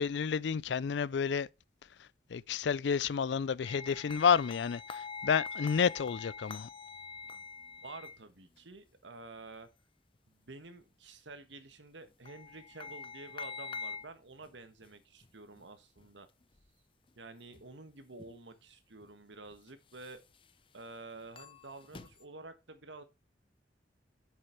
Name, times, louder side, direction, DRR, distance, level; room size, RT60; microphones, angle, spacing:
voice 1, 0.0-1.5 2.0-6.7, left 6 dB, 75° left, 0.4 m, -30 dB
sound 1, 3.6-8.2 12.0-14.1 14.4-14.5 14.9-15.0 15.2-15.3 15.6-15.7 16.0-16.1 16.4-16.7 17.1-17.2 17.5-17.7 18.2-18.3 19.0-19.1 19.5-20.5 21.2-22.2, left 5 dB, 30° left, 0.6 m, -45 dB
voice 2, 7.8-9.7 10.3-16.3 17.2-20.2 20.7-23.0, right 3 dB, 85° right, 1.4 m, -50 dB
7.9 x 6.5 x 4.5 m
head